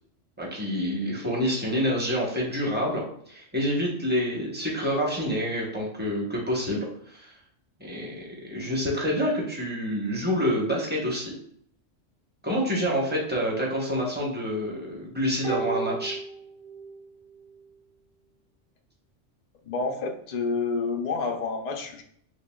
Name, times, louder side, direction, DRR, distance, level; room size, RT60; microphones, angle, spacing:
voice 1, 0.4-7.3 7.8-11.3 12.4-16.2, equal, 10° right, -3 dB, 0.8 m, -27 dB
sound 1, 15.4-17.1 17.4-17.5, right 5 dB, 40° right, 1.2 m, -33 dB
voice 2, 19.6-22.0, left 4 dB, 60° left, 2 dB, 0.4 m, -29 dB
6.2 x 2.2 x 2.2 m, 0.64 s
omnidirectional pair, 1.3 m